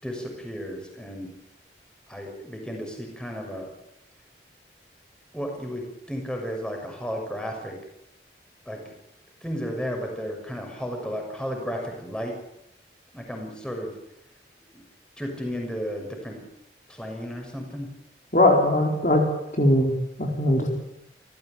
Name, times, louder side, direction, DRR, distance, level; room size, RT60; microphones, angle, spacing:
voice 1, 0.0-1.3 2.1-3.7 5.3-7.7 8.7-8.8 9.4-12.3 13.1-13.9 14.7-14.8 15.2-16.4 16.9-17.9, equal, 5° left, 2 dB, 6.4 m, -33 dB
voice 2, 18.3-19.2 19.6-19.9 20.2-20.7, left 1 dB, 45° left, 1 dB, 4.4 m, -20 dB
28.5 x 15.5 x 9.0 m, 0.80 s
head